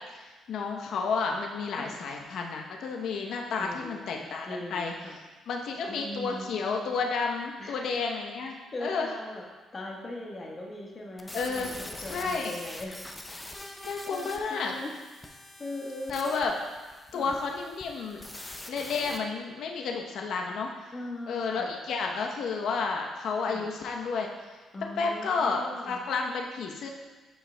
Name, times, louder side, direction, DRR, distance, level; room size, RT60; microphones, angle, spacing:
voice 1, 0.2-4.9 5.5-9.1 11.3-11.8 12.1-12.6 13.8-14.7 16.1-16.5 17.1-18.2 18.7-20.7 21.3-24.3 25.0-26.9, left 4 dB, 70° left, 1 dB, 0.8 m, -31 dB
voice 2, 3.6-5.2 5.9-6.5 7.6-7.8 8.7-9.4 9.7-13.0 13.8-15.0 15.6-16.2 17.1-17.4 20.9-21.8 23.5-23.7 24.7-26.0, left 1 dB, 35° left, -1 dB, 1.2 m, -40 dB
sound 1, 11.2-19.2, left 1 dB, 15° left, 0.5 m, -44 dB
8.8 x 4.9 x 2.2 m, 1.3 s
cardioid pair, 90°, 0 cm